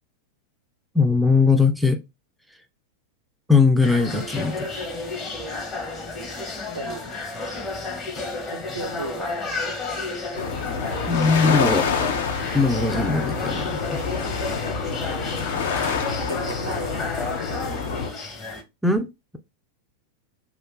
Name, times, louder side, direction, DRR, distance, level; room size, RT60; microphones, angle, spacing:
voice 1, 0.9-2.0 3.5-4.7 11.1-11.9 12.5-14.0 18.8-19.4, left 4 dB, ahead, 0.4 m, -20 dB
sound 1, 3.8-18.6, left 3 dB, 25° left, 0.8 m, -32 dB
voice 2, 6.7-7.2 8.5-9.3 16.2-17.0, right 3 dB, 85° right, 0.6 m, -35 dB
sound 2, 10.4-18.1, left 5 dB, 60° left, 0.6 m, -27 dB
2.5 x 2.3 x 3.7 m
figure-of-eight pair, 90°, 0 cm